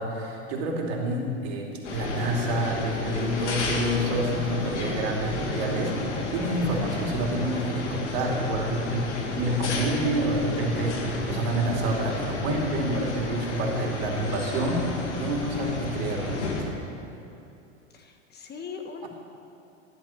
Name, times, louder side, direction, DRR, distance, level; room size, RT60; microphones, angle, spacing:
voice 1, 0.0-9.1 9.4-16.7, right 1 dB, 65° right, 0 dB, 2.8 m, -28 dB
sound 1, 1.8-16.6, left 3 dB, 80° left, 2.1 m, -31 dB
voice 2, 8.2-9.4 17.9-19.1, left 5 dB, 30° left, 4 dB, 1.5 m, -42 dB
14.5 x 11.0 x 5.9 m, 2.7 s
hypercardioid pair, 95°, 34 cm